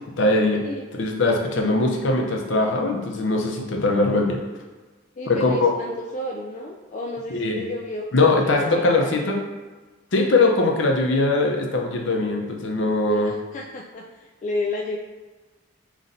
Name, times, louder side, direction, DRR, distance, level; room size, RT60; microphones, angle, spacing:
voice 1, 0.2-0.6 0.9-4.4 5.3-5.7 7.3-7.6 8.1-9.4 10.1-13.3, left 2 dB, 70° left, 1 dB, 0.6 m, -21 dB
voice 2, 5.2-8.1 8.4-9.4 13.1-15.0, left 2 dB, 40° left, -1 dB, 0.3 m, -32 dB
5.4 x 3.1 x 2.6 m, 1.3 s
head